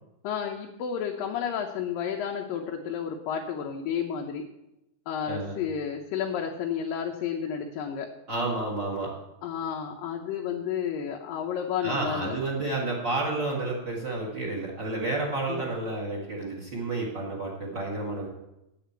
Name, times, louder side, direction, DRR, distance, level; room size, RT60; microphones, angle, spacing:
voice 1, 0.2-4.4 5.1-8.1 9.4-12.4 15.5-15.7, left 8 dB, 85° left, 2 dB, 2.6 m, -31 dB
voice 2, 5.3-5.6 8.3-9.1 11.8-18.3, right 2 dB, 40° right, 0 dB, 2.1 m, -30 dB
8.5 x 8.3 x 8.0 m, 0.90 s
omnidirectional pair, 3.9 m